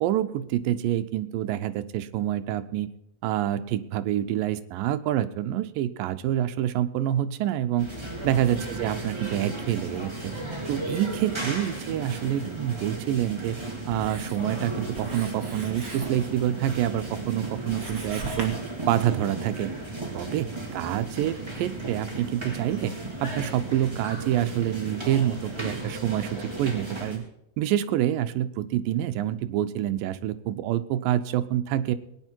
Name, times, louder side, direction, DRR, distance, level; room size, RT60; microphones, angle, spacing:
voice 1, 0.0-2.9 3.2-7.9 8.2-10.3 10.7-13.6 13.9-18.6 18.9-19.8 20.1-20.5 20.7-23.0 23.2-27.2 27.6-32.0, right 12 dB, 85° right, 11 dB, 2.5 m, -27 dB
sound 1, 7.8-27.2, right 2 dB, 10° right, 2.8 m, -35 dB
Writing, 12.3-18.5, right 3 dB, 35° right, 2.7 m, -43 dB
20.5 x 9.9 x 4.5 m, 0.80 s
omnidirectional pair, 3.9 m